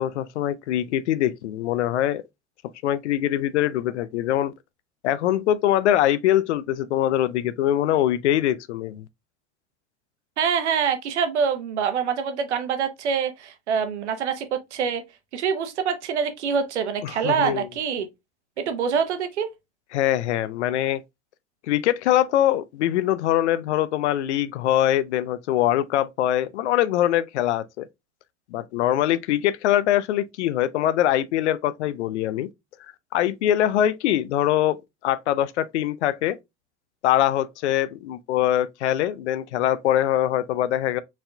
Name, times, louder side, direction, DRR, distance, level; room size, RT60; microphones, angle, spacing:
voice 1, 0.0-2.2 2.8-4.5 5.0-9.0 17.0-17.7 19.9-21.0 21.7-27.9 28.5-32.5 33.1-36.4 37.0-41.0, left 12 dB, 85° left, 0.5 m, -23 dB
voice 2, 10.4-15.0 15.3-18.1 18.6-19.5, right 6 dB, 90° right, 0.8 m, -25 dB
4.6 x 3.5 x 2.2 m
hypercardioid pair, 65°, 33 cm